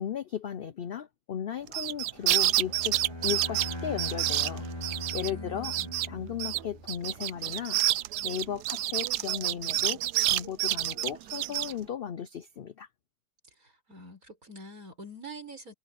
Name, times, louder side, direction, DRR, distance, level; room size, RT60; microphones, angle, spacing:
voice 1, 0.0-4.6 5.1-5.7 6.1-7.8 8.2-12.9, left 9 dB, 75° left, 0.5 m, -36 dB
sound 1, 1.7-5.3 5.6-6.1 6.4-11.7, right 15 dB, 90° right, 1.2 m, -28 dB
Bowed string instrument, 2.2-7.0, left 1 dB, 20° left, 4.0 m, -40 dB
voice 2, 5.3-5.9 7.4-7.5 13.6-15.7, equal, 60° right, 7.3 m, -46 dB
omnidirectional pair, 1.7 m